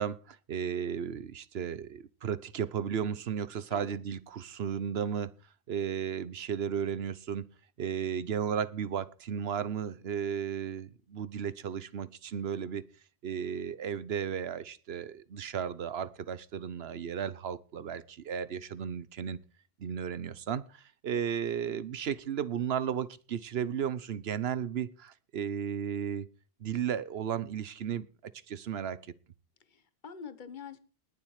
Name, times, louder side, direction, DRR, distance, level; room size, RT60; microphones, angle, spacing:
voice 1, 0.0-5.3 5.7-7.4 7.8-12.8 13.2-19.4 19.8-26.3 26.6-28.1 28.5-29.0, right 8 dB, 70° right, 1.1 m, -34 dB
voice 2, 29.7-30.8, left 6 dB, 50° left, 1.3 m, -46 dB
20.0 x 7.4 x 4.9 m
omnidirectional pair, 1.1 m